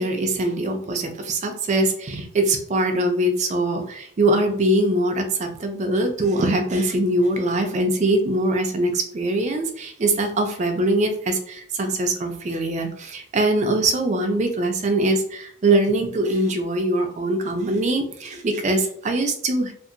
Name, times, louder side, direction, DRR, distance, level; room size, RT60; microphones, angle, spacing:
voice 1, 0.0-19.7, right 1 dB, 35° right, 5 dB, 0.4 m, -22 dB
2.7 x 2.4 x 2.5 m, 0.62 s
head